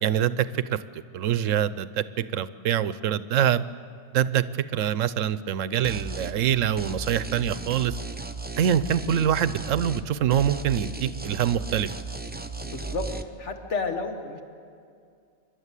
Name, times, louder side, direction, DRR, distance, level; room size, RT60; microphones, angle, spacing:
voice 1, 0.0-2.0 2.3-3.6 4.1-4.4 4.7-7.9 8.6-11.9, right 9 dB, 80° right, 15 dB, 1.0 m, -25 dB
sound 1, 5.8-6.4 6.8-10.1 10.3-13.2, right 3 dB, 10° right, 0.4 m, -35 dB
voice 2, 12.6-14.4, left 3 dB, 65° left, 5 dB, 1.9 m, -31 dB
27.0 x 12.0 x 8.3 m, 2.3 s
omnidirectional pair, 1.3 m